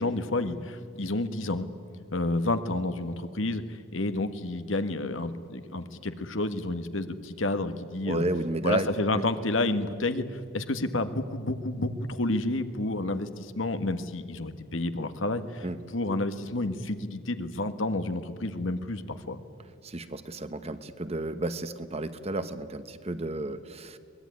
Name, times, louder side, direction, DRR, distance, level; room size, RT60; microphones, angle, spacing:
voice 1, 0.0-1.7 2.1-8.2 8.6-15.6 15.9-19.4, left 2 dB, 80° left, 9 dB, 1.5 m, -30 dB
voice 2, 8.1-9.2 15.6-15.8 19.8-24.0, right 2 dB, 30° right, 11 dB, 1.1 m, -32 dB
23.5 x 20.5 x 9.5 m, 2.1 s
head